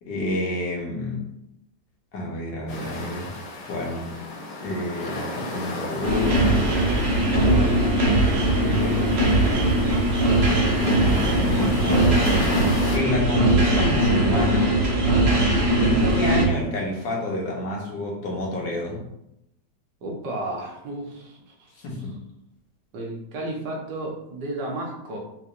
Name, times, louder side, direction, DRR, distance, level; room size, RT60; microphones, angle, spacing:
voice 1, 0.0-1.2 2.1-3.4 3.7-4.2 4.6-9.2 10.4-12.2 12.9-14.7 15.8-19.0 21.8-22.2, left 2 dB, 90° left, -1 dB, 1.6 m, -29 dB
sound 1, 2.7-13.0, left 1 dB, 65° left, 1.1 m, -33 dB
sound 2, 6.0-16.5, right 1 dB, 50° right, 0.9 m, -20 dB
voice 2, 20.0-21.7 22.9-25.2, right 1 dB, 85° right, -1 dB, 1.6 m, -33 dB
4.0 x 3.0 x 2.5 m, 0.80 s
omnidirectional pair, 1.9 m